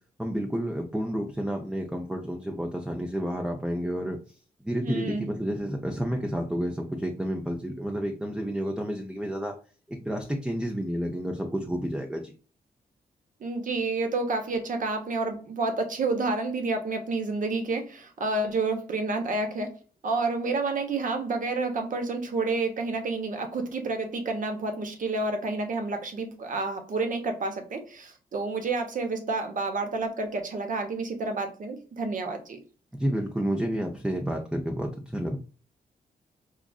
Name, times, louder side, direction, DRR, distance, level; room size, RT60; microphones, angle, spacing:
voice 1, 0.2-4.4 4.6-9.5 9.9-12.3 32.9-35.4, equal, 5° right, 2 dB, 0.5 m, -30 dB
voice 2, 4.8-5.3 13.4-19.7 20.0-32.6, right 3 dB, 55° right, 5 dB, 0.9 m, -29 dB
4.8 x 2.4 x 2.3 m, 0.38 s
cardioid pair, 105°, 16 cm